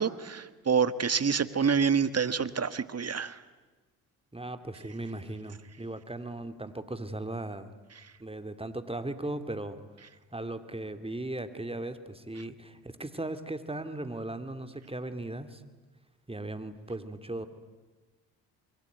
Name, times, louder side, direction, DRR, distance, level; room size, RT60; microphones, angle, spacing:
voice 1, 0.0-3.4, right 6 dB, 35° right, 14 dB, 1.6 m, -27 dB
voice 2, 4.3-7.7 8.2-9.8 10.3-15.6 16.3-17.5, right 2 dB, 15° right, 10 dB, 2.7 m, -37 dB
27.0 x 23.0 x 9.4 m, 1.2 s
hypercardioid pair, 45°, 42 cm